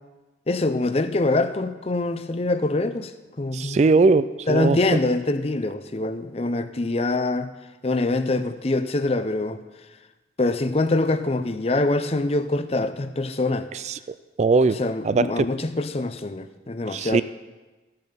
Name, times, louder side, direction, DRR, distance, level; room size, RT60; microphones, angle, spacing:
voice 1, 0.5-3.1 3.4-3.8 4.5-7.5 7.8-9.6 10.4-13.7 14.8-17.2, left 2 dB, 35° left, 11 dB, 0.6 m, -24 dB
voice 2, 3.5-4.8 13.7-14.0 14.4-14.8 15.0-15.5 16.9-17.2, right 3 dB, 40° right, 14 dB, 0.3 m, -20 dB
14.0 x 7.6 x 5.7 m, 1.2 s
head